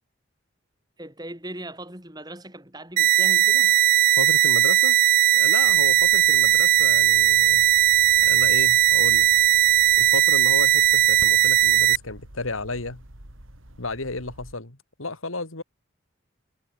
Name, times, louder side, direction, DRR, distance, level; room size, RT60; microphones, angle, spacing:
voice 1, 1.0-3.8 5.6-5.8, right 1 dB, 20° right, 6.4 m, -39 dB
sound 1, 3.0-12.0, right 13 dB, 40° right, 0.4 m, -18 dB
voice 2, 4.2-5.0 5.3-7.7 8.2-9.3 10.0-13.0 13.8-15.6, left 3 dB, 85° left, 3.2 m, -33 dB
sound 2, 5.6-14.5, right 1 dB, 75° right, 3.9 m, -47 dB
head